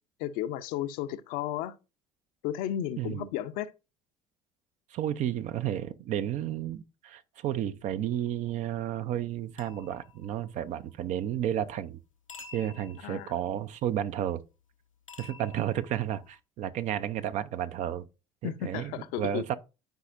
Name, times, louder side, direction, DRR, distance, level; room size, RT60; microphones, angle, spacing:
voice 1, 0.2-1.7 2.4-3.7 13.0-13.3 18.4-19.4, left 12 dB, 60° left, 0.6 m, -33 dB
voice 2, 3.0-3.3 4.9-12.0 12.5-14.4 15.2-18.1 18.4-19.5, right 11 dB, 45° right, 0.6 m, -32 dB
sound 1, 9.6-10.8 12.3-13.7 15.1-16.4, left 5 dB, 90° left, 0.8 m, -50 dB
11.5 x 4.9 x 2.6 m
figure-of-eight pair, 60°, 17 cm